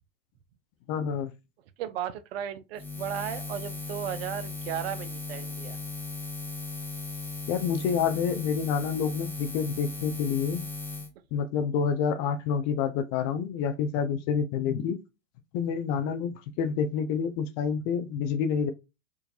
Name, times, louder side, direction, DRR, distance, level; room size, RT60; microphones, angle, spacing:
voice 1, 0.9-1.3 7.5-10.6 11.3-15.0 15.5-18.7, left 7 dB, 30° left, 0.4 m, -28 dB
voice 2, 1.8-5.8, right 10 dB, 50° right, 0.6 m, -35 dB
Buzz, 2.7-11.1, left 3 dB, 5° left, 0.8 m, -37 dB
4.8 x 2.6 x 2.2 m
hypercardioid pair, 115°, 38 cm